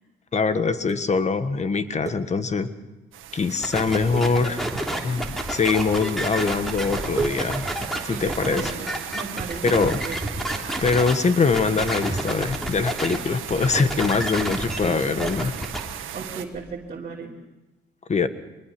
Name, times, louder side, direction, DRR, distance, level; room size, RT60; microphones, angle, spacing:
voice 1, 0.3-2.7 3.3-4.6 5.0-7.6 8.0-8.7 9.6-10.0 10.8-15.5 18.1-18.3, left 4 dB, 35° left, 11 dB, 1.5 m, -23 dB
sound 1, 0.8-2.8 3.2-3.4 3.7-3.8 4.1-5.2 5.9-6.5 6.7-6.8 7.2-9.2 9.8-10.4 10.7-17.0, right 5 dB, 15° right, 1.3 m, -40 dB
sound 2, 3.1-16.5, right 10 dB, 85° right, 1.6 m, -37 dB
sound 3, 3.6-11.1 11.5-13.2 13.5-15.8, right 1 dB, ahead, 3.3 m, -29 dB
voice 2, 8.1-10.2 16.1-17.3, right 4 dB, 35° right, -5 dB, 3.2 m, -35 dB
24.5 x 20.0 x 6.1 m, 1.1 s
cardioid pair, 90°, 20 cm